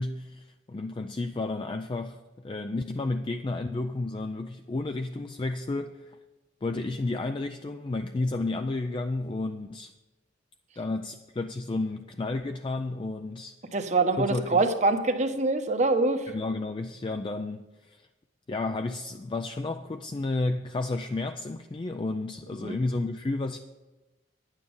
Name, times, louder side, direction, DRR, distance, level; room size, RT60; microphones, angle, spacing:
voice 1, 0.0-6.2 6.6-9.9 10.8-13.5 14.2-14.7 16.3-18.0 18.5-23.6, left 2 dB, 25° left, 7 dB, 0.4 m, -32 dB
voice 2, 13.7-16.2 22.6-22.8, right 3 dB, 40° right, 7 dB, 0.9 m, -24 dB
10.5 x 9.0 x 5.4 m, 1.1 s
head